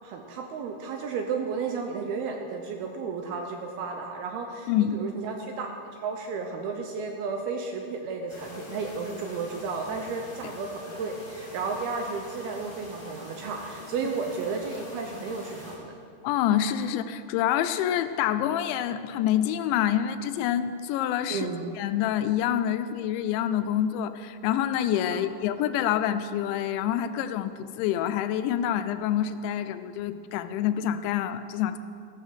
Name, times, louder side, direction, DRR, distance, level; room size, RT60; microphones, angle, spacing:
voice 1, 0.0-15.9 21.3-21.7 25.1-25.2, right 5 dB, 75° right, 3 dB, 2.4 m, -33 dB
sound 1, 8.3-15.8, left 2 dB, 40° left, 5.0 m, -43 dB
voice 2, 16.2-21.5 21.8-31.8, left 10 dB, 85° left, 11 dB, 2.9 m, -27 dB
14.5 x 14.5 x 5.0 m, 2.5 s
omnidirectional pair, 5.3 m